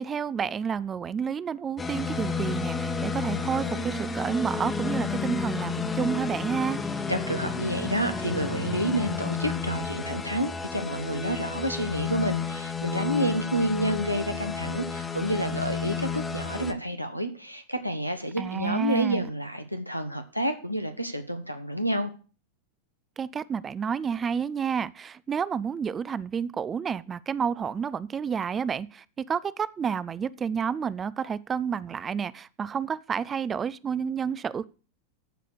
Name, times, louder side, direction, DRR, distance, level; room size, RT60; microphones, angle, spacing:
voice 1, 0.0-6.8 18.4-19.3 23.2-34.6, right 7 dB, 20° right, 0.4 m, -30 dB
sound 1, 1.8-16.7, left 5 dB, 15° left, 1.1 m, -31 dB
voice 2, 7.1-22.1, right 1 dB, 90° right, 1.2 m, -29 dB
13.5 x 5.0 x 6.6 m
figure-of-eight pair, 90°, 0 cm